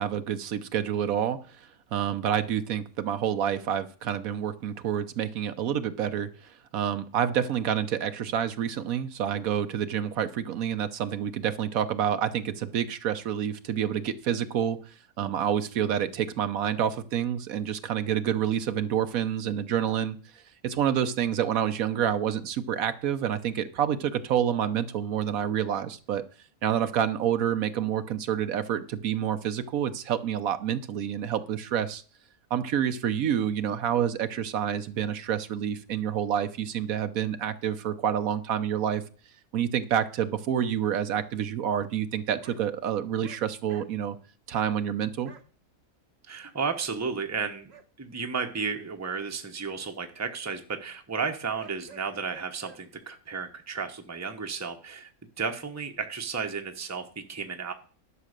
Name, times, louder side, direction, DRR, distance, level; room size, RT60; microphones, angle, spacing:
voice 1, 0.0-14.8 15.2-20.2 20.6-26.2 26.6-32.0 32.5-39.0 39.5-44.2 44.5-45.3, right 9 dB, 75° right, 10 dB, 1.2 m, -28 dB
sound 1, 39.9-40.1 42.4-42.6 43.0-43.4 43.7-44.1 44.5-44.7 45.2-45.4 46.7-46.9 47.7-47.8 51.6-52.8, right 5 dB, 50° right, 1.0 m, -50 dB
voice 2, 46.3-47.7 48.0-55.1 55.4-57.7, right 5 dB, 15° right, 5 dB, 0.8 m, -33 dB
11.5 x 6.0 x 6.6 m, 0.40 s
omnidirectional pair, 1.5 m